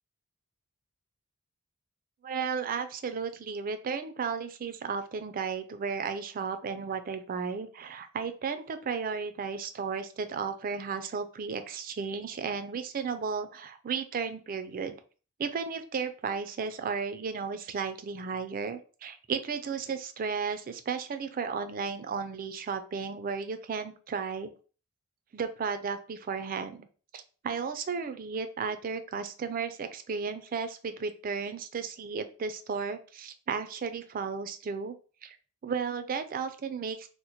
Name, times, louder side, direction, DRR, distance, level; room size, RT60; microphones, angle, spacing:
voice 1, 2.2-15.0 15.4-24.5 25.3-26.9 27.1-35.0 35.2-35.4 35.6-37.1, right 5 dB, 40° right, 9 dB, 0.4 m, -34 dB
2.9 x 2.1 x 4.1 m, 0.38 s
head